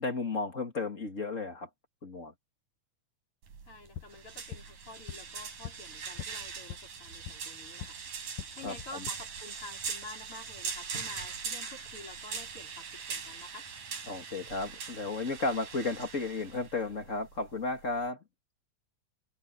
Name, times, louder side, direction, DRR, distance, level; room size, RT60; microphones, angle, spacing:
voice 1, 0.0-1.7 2.0-2.3 8.6-9.0 14.1-18.2, left 3 dB, 25° left, 2.2 m, -34 dB
sound 1, 3.4-18.1, right 6 dB, 85° right, 5.4 m, -41 dB
voice 2, 3.6-8.0 8.5-13.7, left 3 dB, 45° left, 5.2 m, -49 dB
sound 2, 3.7-8.0 8.3-9.1, left 10 dB, 80° left, 2.6 m, -45 dB
omnidirectional pair, 3.5 m